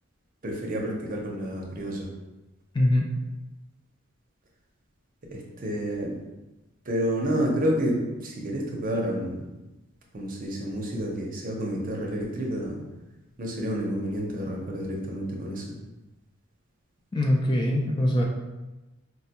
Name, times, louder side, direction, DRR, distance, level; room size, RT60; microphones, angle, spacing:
voice 1, 0.4-2.1 5.3-6.2 6.9-9.4 10.1-12.8 13.4-15.8, equal, 40° right, -1 dB, 0.6 m, -29 dB
voice 2, 2.7-3.1 17.1-18.2, left 1 dB, 20° left, 0 dB, 0.3 m, -22 dB
4.2 x 2.2 x 2.8 m, 1.1 s
head